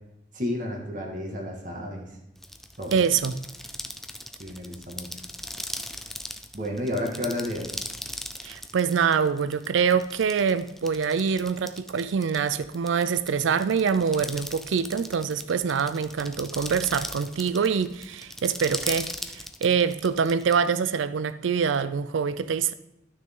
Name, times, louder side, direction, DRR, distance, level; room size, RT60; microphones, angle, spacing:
voice 1, 0.3-2.1 2.8-3.1 4.4-5.2 6.5-7.7, left 1 dB, 45° right, 1.9 m, -31 dB
sound 1, 2.4-20.5, left 1 dB, ahead, 0.4 m, -38 dB
voice 2, 2.9-3.3 8.4-22.7, right 6 dB, 90° right, 0.4 m, -25 dB
12.0 x 6.2 x 3.7 m
head